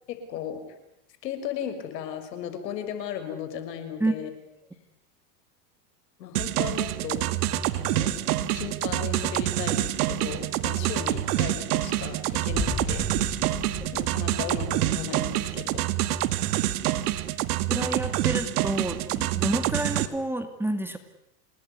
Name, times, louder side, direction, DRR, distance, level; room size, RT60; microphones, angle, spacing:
voice 1, 0.1-0.6 1.2-4.3 6.2-7.2 7.7-8.1 8.5-13.1 13.3-13.4 13.9-15.8, left 8 dB, 80° left, 8 dB, 6.4 m, -36 dB
sound 1, 6.3-20.1, right 14 dB, 65° right, 2.2 m, -27 dB
Boom, 12.5-15.4, left 4 dB, 15° left, 3.7 m, -36 dB
voice 2, 17.7-21.0, right 1 dB, 5° right, 8 dB, 2.3 m, -29 dB
28.5 x 20.0 x 9.6 m, 0.83 s
supercardioid pair, 130°, 49 cm